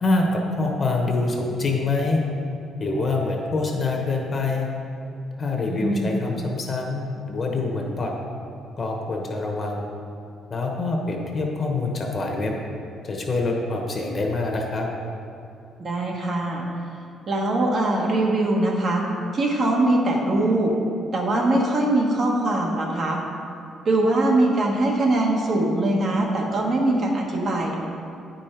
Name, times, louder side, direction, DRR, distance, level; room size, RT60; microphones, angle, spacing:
voice 1, 0.0-2.2 2.8-4.7 5.4-8.1 8.8-9.9 10.5-12.5 13.0-14.9, left 3 dB, 30° left, 0 dB, 1.1 m, -25 dB
voice 2, 5.7-6.2 15.8-16.6 17.3-19.0 19.3-20.7 21.1-23.2 23.8-27.8, right 2 dB, 45° right, -1 dB, 1.2 m, -22 dB
9.0 x 5.2 x 4.5 m, 2.5 s
cardioid pair, 130°, 0 cm